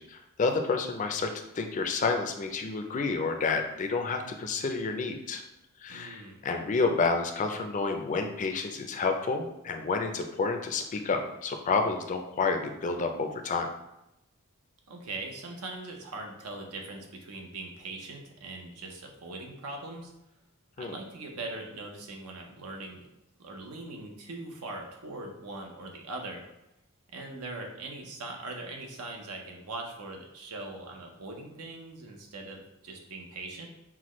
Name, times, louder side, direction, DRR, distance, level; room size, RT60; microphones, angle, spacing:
voice 1, 0.0-5.4 5.8-13.7 20.8-21.0, left 4 dB, 35° left, 5 dB, 0.4 m, -30 dB
voice 2, 5.9-6.4 14.9-20.1 20.8-23.0 23.4-26.4 27.1-33.7, right 2 dB, 90° right, 2 dB, 0.8 m, -41 dB
5.9 x 2.2 x 3.1 m, 0.90 s
head